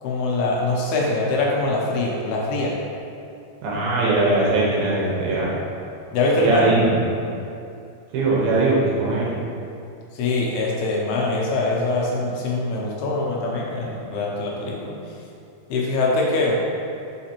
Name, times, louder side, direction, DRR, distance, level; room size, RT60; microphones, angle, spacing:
voice 1, 0.0-2.7 6.1-6.7 10.1-14.9 15.7-16.6, left 2 dB, 80° left, -3 dB, 2.7 m, -23 dB
voice 2, 3.6-5.6 6.4-7.0 8.1-9.3, right 2 dB, 75° right, -5 dB, 2.6 m, -20 dB
5.9 x 5.7 x 2.9 m, 2.6 s
omnidirectional pair, 4.7 m